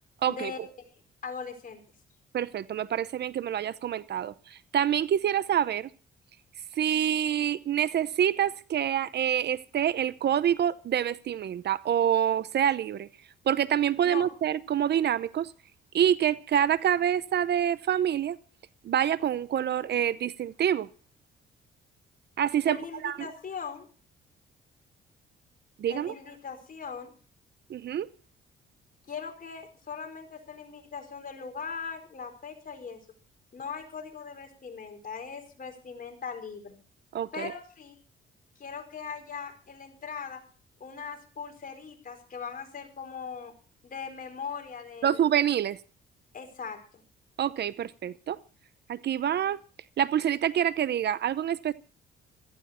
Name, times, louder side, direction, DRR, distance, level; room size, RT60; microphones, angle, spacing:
voice 1, 0.3-0.6 1.2-1.8 14.0-14.3 22.6-23.9 25.9-27.1 29.1-33.0 33.5-36.7 37.3-38.0 38.6-40.4 40.8-43.5 43.8-45.3 46.3-47.0, left 6 dB, 45° left, 4.6 m, -40 dB
voice 2, 2.3-5.9 6.8-13.1 13.5-15.5 15.9-18.4 18.8-20.9 22.4-22.8 23.0-23.3 25.8-26.1 27.7-28.1 37.1-37.5 45.0-45.8 47.4-48.4 48.9-49.6 50.0-51.7, right 10 dB, 60° right, 0.8 m, -26 dB
17.0 x 14.5 x 4.4 m
cardioid pair, 90°, 20 cm